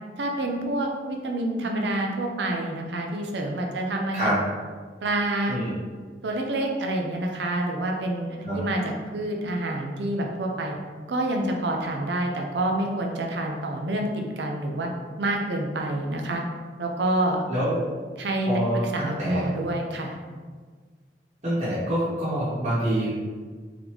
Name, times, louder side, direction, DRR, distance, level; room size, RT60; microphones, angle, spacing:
voice 1, 0.2-4.3 5.0-5.6 6.2-8.8 9.1-10.8 11.1-14.9 15.2-16.4 16.8-17.4 18.2-18.6 18.9-20.2, right 1 dB, 80° right, 1 dB, 0.6 m, -27 dB
voice 2, 17.5-17.8 18.5-19.4 21.4-23.1, right 1 dB, 40° right, -13 dB, 1.1 m, -26 dB
3.7 x 3.6 x 3.1 m, 1.5 s
head